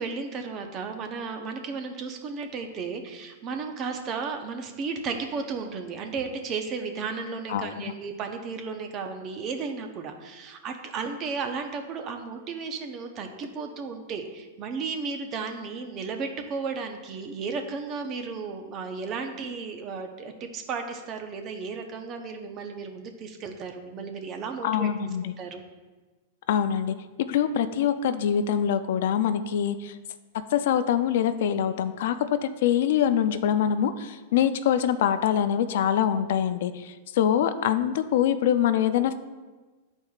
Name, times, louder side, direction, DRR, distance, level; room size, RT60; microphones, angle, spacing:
voice 1, 0.0-24.9 25.2-25.6, right 5 dB, 35° right, 5 dB, 0.8 m, -34 dB
voice 2, 7.5-7.9 24.6-25.3 26.5-26.9 27.3-29.9 30.5-32.2 32.4-39.1, left 9 dB, 70° left, 10 dB, 0.4 m, -24 dB
11.0 x 4.4 x 2.4 m, 1.3 s
hypercardioid pair, 125°, 0 cm